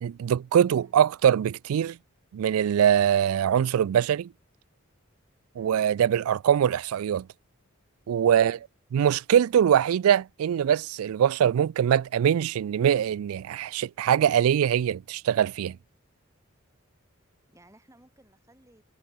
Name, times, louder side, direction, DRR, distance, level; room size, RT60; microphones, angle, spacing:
voice 1, 0.0-2.0 2.3-4.3 5.6-7.3 8.1-8.6 8.9-15.8, right 9 dB, 90° right, 0.3 m, -23 dB
voice 2, 0.7-1.0 5.6-5.9 17.5-18.8, right 1 dB, 15° right, 5.1 m, -57 dB
head